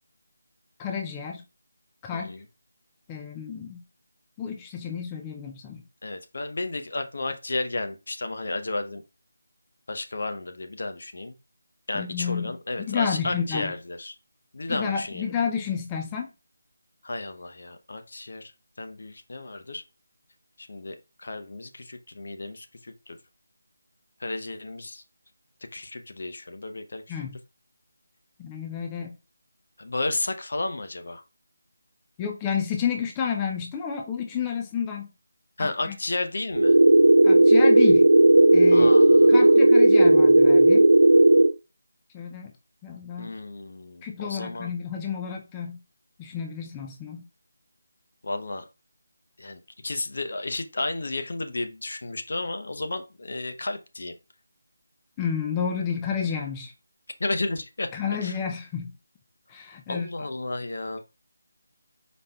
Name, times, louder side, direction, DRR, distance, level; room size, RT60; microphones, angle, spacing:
voice 1, 0.8-1.4 2.0-2.3 3.1-3.8 4.4-5.8 11.9-12.6 12.9-13.7 14.7-16.3 27.1-27.4 28.4-29.2 32.2-35.1 35.6-35.9 37.2-38.1 38.5-38.9 39.3-40.9 42.1-42.5 42.8-43.3 44.0-45.8 46.2-47.2 55.2-56.7 57.9-58.9 59.5-60.1, left 7 dB, 15° left, 0.4 m, -30 dB
voice 2, 2.1-2.4 6.0-9.0 9.9-11.3 11.9-14.1 14.5-15.2 17.0-18.5 18.8-19.8 20.6-23.2 24.2-25.0 25.7-27.0 29.8-31.2 35.6-36.8 38.7-39.4 43.2-44.7 48.2-48.6 49.4-54.1 57.2-57.9 58.2-58.3 59.9-61.0, left 2 dB, 60° left, 0.7 m, -32 dB
sound 1, 36.6-41.5, right 1 dB, 90° right, 0.3 m, -15 dB
5.1 x 4.2 x 2.3 m
figure-of-eight pair, 165°, 0 cm